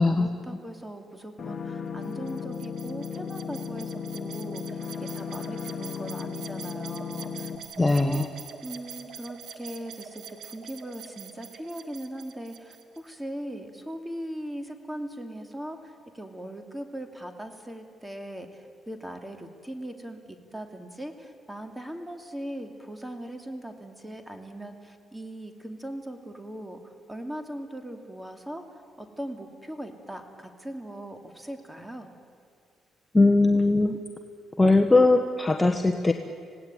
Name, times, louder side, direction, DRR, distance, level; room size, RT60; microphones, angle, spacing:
voice 1, 0.0-7.5 7.8-8.3 8.6-28.6 29.0-32.1, right 1 dB, 10° right, 5 dB, 2.7 m, -39 dB
sound 1, 1.4-7.6, left 6 dB, 45° left, 2.3 m, -35 dB
sound 2, 2.0-13.1, right 7 dB, 65° right, 2.2 m, -45 dB
voice 2, 7.8-8.2 33.1-34.0 34.6-36.1, left 2 dB, 15° left, 4 dB, 1.3 m, -20 dB
27.0 x 18.0 x 9.2 m, 2.2 s
cardioid pair, 90°, 0 cm